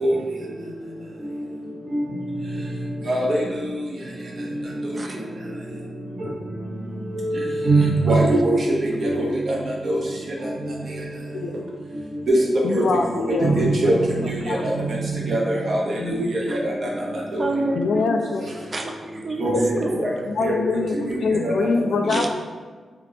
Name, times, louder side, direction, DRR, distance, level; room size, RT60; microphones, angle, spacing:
voice 1, 3.1-3.4 6.2-6.3 7.2-8.5 8.8-9.6 9.8-10.0 12.3-12.4 12.7-12.9 13.1-15.8 16.1-16.9 17.3-17.4 19.4-19.7 20.0-20.1 20.4-20.6 21.1-21.7 22.0-22.2, right 2 dB, 50° right, -3 dB, 0.8 m, -22 dB
voice 2, 11.3-11.7 12.6-14.7 16.0-16.2 16.5-16.6 17.8-18.5 20.3-22.3, left 4 dB, 70° left, 5 dB, 0.3 m, -25 dB
voice 3, 17.4-18.4 18.7-20.2 22.1-22.3, right 2 dB, 30° right, 3 dB, 0.4 m, -29 dB
3.7 x 3.3 x 3.3 m, 1.5 s
wide cardioid pair, 145°, 0 cm